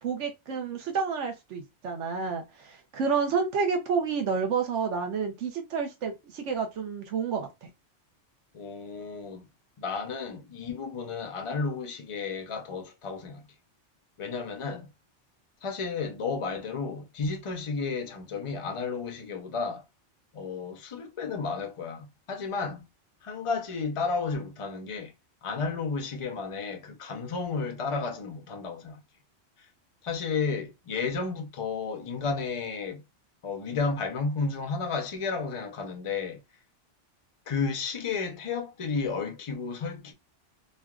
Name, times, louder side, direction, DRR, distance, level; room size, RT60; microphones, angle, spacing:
voice 1, 0.0-7.7, right 5 dB, 75° right, 1.0 m, -30 dB
voice 2, 8.5-9.5 9.8-13.4 14.2-14.9 15.6-19.8 20.3-22.9 23.2-25.1 25.4-29.0 30.0-33.0 33.4-36.4 37.5-40.1, left 4 dB, 45° left, 0.4 m, -32 dB
3.1 x 2.3 x 2.3 m
omnidirectional pair, 1.3 m